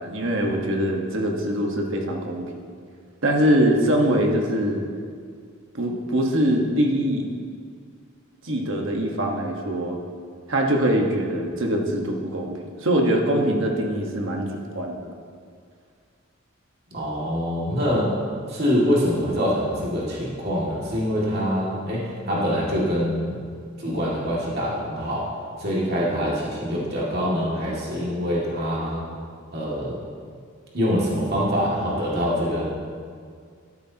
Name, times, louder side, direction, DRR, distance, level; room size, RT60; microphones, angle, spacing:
voice 1, 0.0-2.5 3.2-4.8 5.7-7.3 8.4-10.0 10.5-15.1, right 1 dB, 65° right, 1 dB, 1.4 m, -23 dB
voice 2, 16.9-18.1 18.5-23.4 23.8-25.3 25.6-29.0 29.5-30.0 30.7-32.7, equal, 50° right, -6 dB, 2.3 m, -24 dB
12.5 x 11.5 x 2.9 m, 2.1 s
head